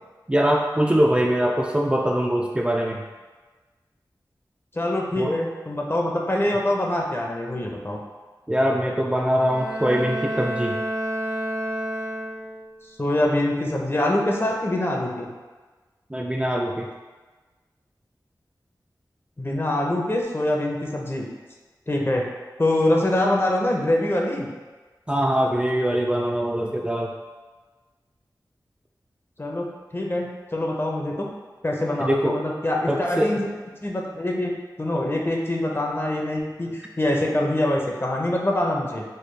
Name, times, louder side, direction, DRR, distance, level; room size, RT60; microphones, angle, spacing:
voice 1, 0.3-3.0 5.1-5.4 8.5-10.8 16.1-16.9 25.1-27.1 32.0-32.4 32.9-33.3, equal, 15° right, -1 dB, 0.3 m, -22 dB
voice 2, 4.7-8.0 13.0-15.3 19.4-21.3 21.9-22.3 22.6-24.5 29.4-31.3 31.6-33.5 33.8-39.0, left 1 dB, 30° left, 0 dB, 0.7 m, -24 dB
Bowed string instrument, 9.4-12.8, right 1 dB, 55° right, 0.8 m, -29 dB
4.3 x 2.3 x 3.2 m, 1.3 s
cardioid pair, 40°, 8 cm